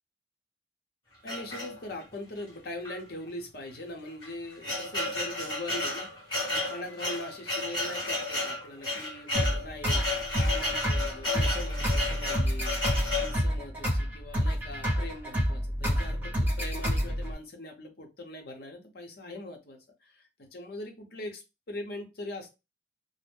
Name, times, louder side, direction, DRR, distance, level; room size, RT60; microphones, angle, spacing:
voice 1, 1.2-22.5, left 1 dB, 60° left, 3 dB, 0.8 m, -41 dB
sound 1, 1.3-2.1 2.8-3.0 3.3-3.4 4.1-13.4, left 2 dB, 25° left, 1.5 m, -32 dB
sound 2, 9.3-17.3, equal, 10° right, 1.2 m, -29 dB
2.6 x 2.0 x 3.5 m, 0.26 s
head